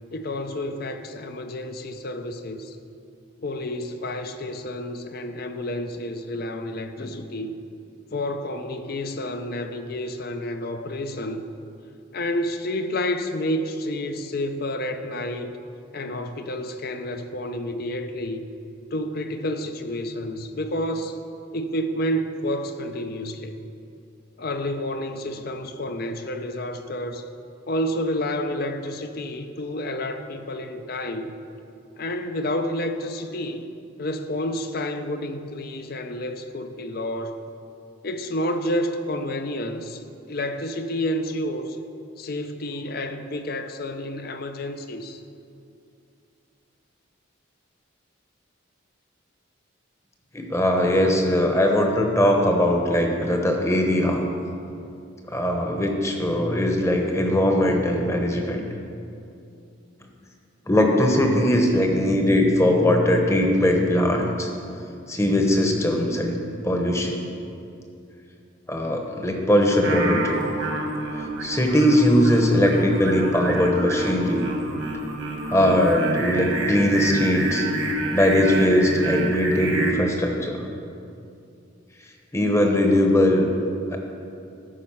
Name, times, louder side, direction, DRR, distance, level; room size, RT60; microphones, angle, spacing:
voice 1, 0.1-2.8 3.4-7.5 8.1-11.4 12.1-15.6 15.9-18.5 18.9-21.2 21.5-23.5 24.4-27.3 27.7-31.4 32.0-33.6 34.0-37.4 38.0-41.8 42.2-45.2, left 1 dB, 50° left, 8 dB, 0.6 m, -29 dB
voice 2, 50.3-54.2 55.3-58.6 60.7-64.5 65.1-66.4 66.6-67.3 68.7-70.4 71.4-74.5 75.5-77.7 78.1-80.6 82.3-83.5 83.9-84.0, left 1 dB, 15° left, 2 dB, 0.9 m, -20 dB
Singing, 69.8-79.9, right 1 dB, 65° right, 1.5 m, -28 dB
13.5 x 5.4 x 5.6 m, 2.6 s
head